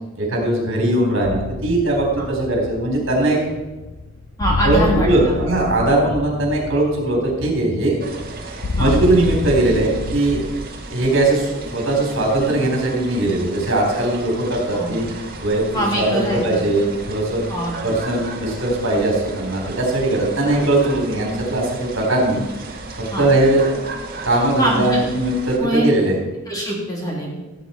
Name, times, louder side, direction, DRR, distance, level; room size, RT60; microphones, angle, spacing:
voice 1, 0.2-3.4 4.6-8.0 8.7-10.4 10.9-15.0 15.4-15.6 16.0-17.5 17.8-22.4 23.2-23.6 24.2-26.2, right 2 dB, 65° right, -1 dB, 3.9 m, -19 dB
sound 1, 1.2-10.7, left 2 dB, 55° left, 0.7 m, -28 dB
voice 2, 4.4-5.1 8.8-9.0 14.7-14.9 15.7-16.6 17.5-17.7 23.1-23.3 24.6-25.0 25.6-25.9 26.5-27.3, equal, 15° left, -3 dB, 2.8 m, -23 dB
sound 2, 8.0-25.6, right 3 dB, 45° right, 1.8 m, -35 dB
16.0 x 8.3 x 4.4 m, 1.1 s
head